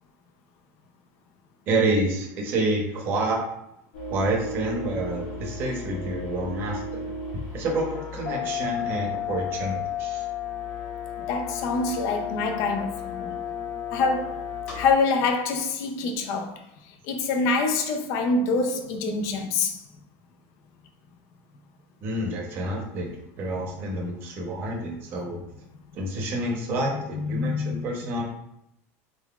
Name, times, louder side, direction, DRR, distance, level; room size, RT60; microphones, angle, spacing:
voice 1, 1.7-3.4 4.1-7.0 7.5-10.3 22.0-23.1 23.4-25.4 25.9-28.2, right 2 dB, 30° right, 0.8 m, -28 dB
sound 1, 3.9-14.9, left 6 dB, 70° left, 1.5 m, -33 dB
voice 2, 11.3-13.4 13.9-14.4 14.7-19.8 27.2-27.9, left 4 dB, 45° left, 0.5 m, -26 dB
4.1 x 3.8 x 2.4 m
cardioid pair, 180°, 8 cm